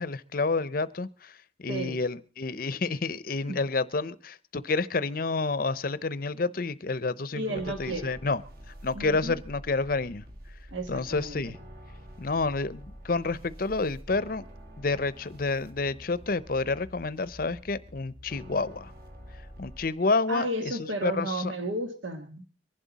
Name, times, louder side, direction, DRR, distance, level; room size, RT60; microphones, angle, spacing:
voice 1, 0.0-8.4 8.7-10.2 10.9-11.6 12.2-14.5 14.8-18.9 19.3-21.5, left 3 dB, 50° left, 17 dB, 0.6 m, -29 dB
voice 2, 7.3-8.1 8.9-9.3 10.7-11.4 20.3-22.4, right 1 dB, 85° right, 6 dB, 1.5 m, -33 dB
sound 1, 7.5-19.9, equal, 50° right, 2.3 m, -47 dB
23.0 x 11.5 x 4.1 m, 0.37 s
head